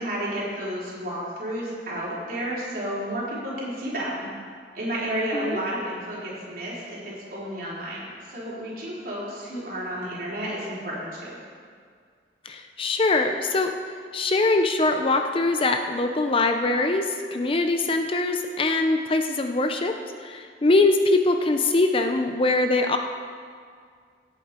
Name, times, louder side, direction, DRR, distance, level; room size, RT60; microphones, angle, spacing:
voice 1, 0.0-4.3 4.7-11.4, right 1 dB, 55° right, -6 dB, 3.8 m, -31 dB
voice 2, 12.4-13.7 14.1-23.0, left 2 dB, 30° left, 5 dB, 0.6 m, -23 dB
17.5 x 8.3 x 4.4 m, 2.1 s
head